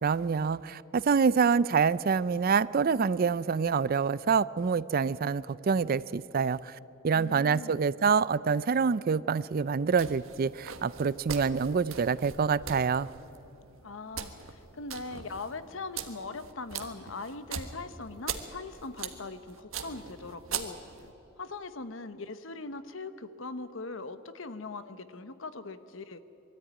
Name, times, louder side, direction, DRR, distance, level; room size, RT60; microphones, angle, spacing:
voice 1, 0.0-6.8 7.0-13.1, right 5 dB, 45° right, 19 dB, 0.4 m, -26 dB
voice 2, 7.1-7.8 13.8-20.8 21.4-26.2, left 3 dB, 70° left, 12 dB, 1.0 m, -41 dB
sound 1, 9.9-21.1, right 7 dB, 85° right, 1.4 m, -41 dB
21.5 x 13.5 x 9.4 m, 3.0 s
head